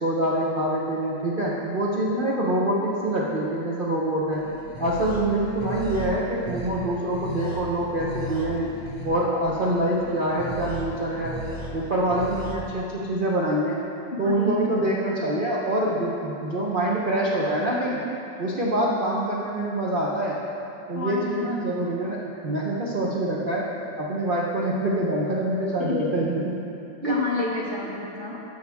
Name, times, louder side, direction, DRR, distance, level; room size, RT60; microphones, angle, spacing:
voice 1, 0.0-4.4 4.8-8.7 9.0-11.4 11.7-13.8 14.2-18.0 18.4-20.4 20.9-23.6 24.0-26.4 27.0-27.2, right 1 dB, 50° right, -4 dB, 0.6 m, -25 dB
sound 1, 4.3-12.5, right 1 dB, 15° right, 0.8 m, -36 dB
voice 2, 14.1-14.8 20.9-21.5 25.8-26.2 27.0-28.4, left 3 dB, 40° left, -5 dB, 1.0 m, -30 dB
13.5 x 6.5 x 3.5 m, 2.7 s
omnidirectional pair, 2.1 m